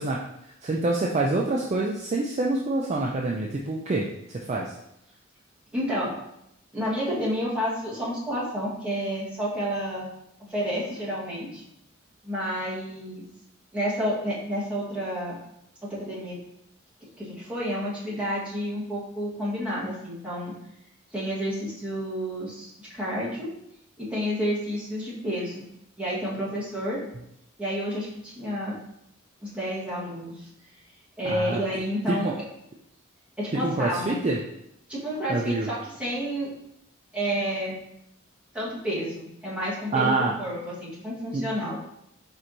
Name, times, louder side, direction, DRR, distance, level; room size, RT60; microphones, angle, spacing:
voice 1, 0.0-4.7 31.2-31.6 32.1-32.3 33.5-34.4 35.3-35.7 39.9-40.3 41.3-41.5, right 2 dB, 30° right, -2 dB, 0.3 m, -26 dB
voice 2, 5.7-6.1 6.7-10.1 10.5-11.6 12.2-13.2 13.7-15.4 15.8-16.4 17.2-20.5 21.1-23.5 24.0-25.6 26.0-27.0 27.6-28.8 29.4-30.5 31.2-32.3 33.4-34.2 34.9-36.5 37.1-37.8 38.5-41.8, equal, 5° right, -9 dB, 1.3 m, -30 dB
4.4 x 4.4 x 2.6 m, 0.80 s
head